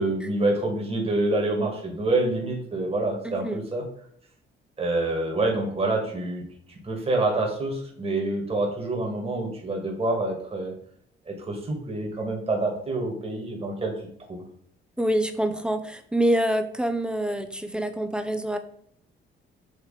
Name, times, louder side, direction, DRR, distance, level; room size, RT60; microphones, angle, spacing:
voice 1, 0.0-3.8 4.8-6.4 6.7-10.7 11.3-13.9 14.3-14.4, right 2 dB, 30° right, 0 dB, 2.2 m, -27 dB
voice 2, 3.2-3.6 15.0-18.6, right 1 dB, 5° right, 8 dB, 0.7 m, -26 dB
6.5 x 3.3 x 5.0 m, 0.65 s
cardioid pair, 90°, 20 cm